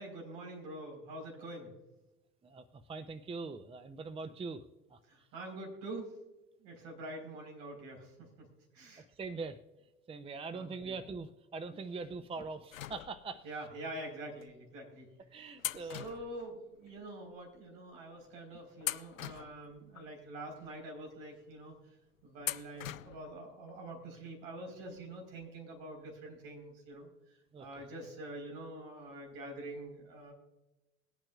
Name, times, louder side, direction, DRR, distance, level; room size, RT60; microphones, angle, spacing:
voice 1, 0.0-1.7 5.1-6.1 6.6-9.0 10.5-11.0 13.4-15.1 15.4-15.5 15.8-21.8 22.2-27.1 27.6-30.3, right 1 dB, 60° right, 2 dB, 4.3 m, -46 dB
voice 2, 2.4-4.6 4.9-5.0 9.2-9.6 10.1-13.5 15.3-16.0 27.5-27.8, right 4 dB, 15° right, 12 dB, 0.6 m, -42 dB
sound 1, 12.7-13.6 14.4-14.5 15.6-17.0 17.3-17.4 18.2-18.4 18.8-20.1 20.6-20.7 22.4-23.4 23.7-23.8 25.0-25.1 25.4-25.5, left 12 dB, 90° left, 0.5 m, -42 dB
22.0 x 8.8 x 2.4 m, 1.0 s
hypercardioid pair, 80°, 39 cm